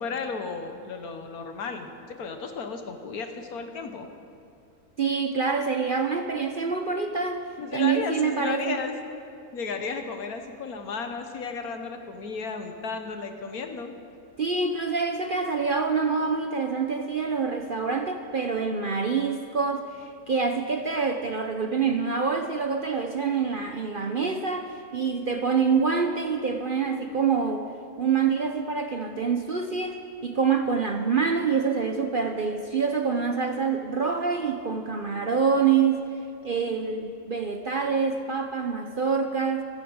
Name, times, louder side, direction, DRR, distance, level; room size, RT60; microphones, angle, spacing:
voice 1, 0.0-4.1 7.6-9.0 9.5-13.9, left 5 dB, 70° left, 6 dB, 1.6 m, -34 dB
voice 2, 5.0-7.4 7.7-8.8 14.4-27.6 28.0-36.0 36.4-39.6, right 5 dB, 50° right, 5 dB, 0.7 m, -26 dB
16.0 x 13.5 x 6.3 m, 2.5 s
omnidirectional pair, 1.6 m